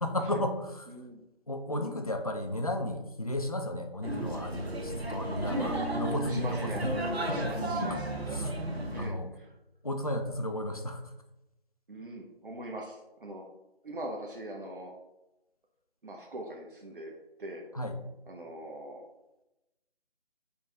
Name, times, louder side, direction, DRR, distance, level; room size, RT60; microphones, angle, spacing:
voice 1, 0.0-0.9 1.5-6.9 7.3-8.5 9.0-9.3 9.8-11.0 17.7-18.0, left 1 dB, 40° left, 6 dB, 0.4 m, -34 dB
voice 2, 0.9-1.2 5.2-5.7 6.3-6.8 7.3-8.1 8.9-9.5 11.9-13.4 13.8-14.9 16.0-17.1 17.4-17.6 18.3-19.0, right 1 dB, 60° right, 1 dB, 0.7 m, -41 dB
sound 1, 4.0-9.1, right 1 dB, 85° right, 1.1 m, -33 dB
5.4 x 2.2 x 3.9 m, 0.94 s
figure-of-eight pair, 155°, 31 cm